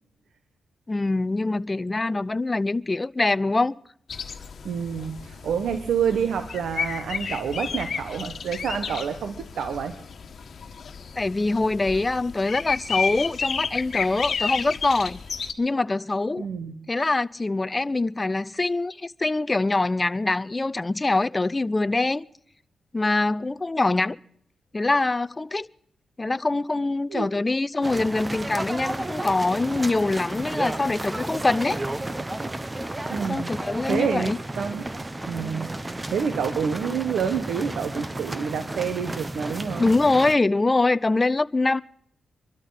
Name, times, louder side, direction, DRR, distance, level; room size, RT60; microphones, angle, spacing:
voice 1, 0.9-3.7 11.2-15.2 15.6-16.4 16.9-22.2 22.9-24.2 24.7-25.7 26.2-31.8 33.3-34.4 39.8-41.8, left 2 dB, 25° left, 0.6 m, -24 dB
sound 1, 4.1-15.5, left 6 dB, 60° left, 1.5 m, -32 dB
voice 2, 4.6-9.9 16.4-16.8 27.1-27.3 33.1-33.5 33.9-34.9 35.3-39.9, right 7 dB, 80° right, 1.4 m, -28 dB
sound 2, 27.8-40.4, right 2 dB, 20° right, 1.0 m, -32 dB
24.5 x 12.5 x 4.2 m
cardioid pair, 70°, 0 cm